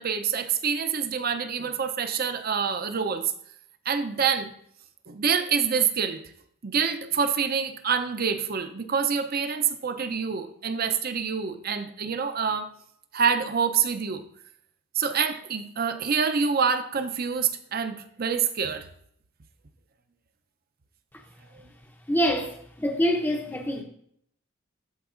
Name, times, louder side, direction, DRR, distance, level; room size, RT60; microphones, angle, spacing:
voice 1, 0.0-3.3 3.9-4.5 5.1-6.2 6.6-12.7 13.1-14.2 15.0-18.8, right 6 dB, 45° right, 0.6 m, -26 dB
voice 2, 22.1-23.8, equal, 10° left, 0.6 m, -25 dB
13.0 x 4.6 x 2.5 m
head